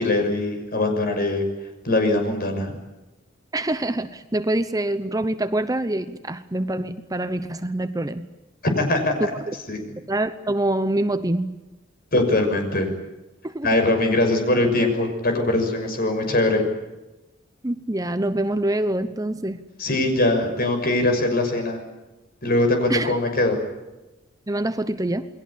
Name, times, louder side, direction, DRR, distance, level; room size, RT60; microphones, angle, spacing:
voice 1, 0.0-1.4 1.8-2.7 8.6-9.3 9.7-9.8 12.1-12.9 13.6-16.6 19.8-21.8 22.4-23.6, left 2 dB, 50° left, 5 dB, 6.2 m, -21 dB
voice 2, 3.5-8.3 10.1-11.6 13.4-13.8 17.6-19.6 22.9-23.2 24.5-25.3, right 1 dB, 20° right, 11 dB, 0.9 m, -25 dB
29.0 x 21.5 x 8.6 m, 1.1 s
head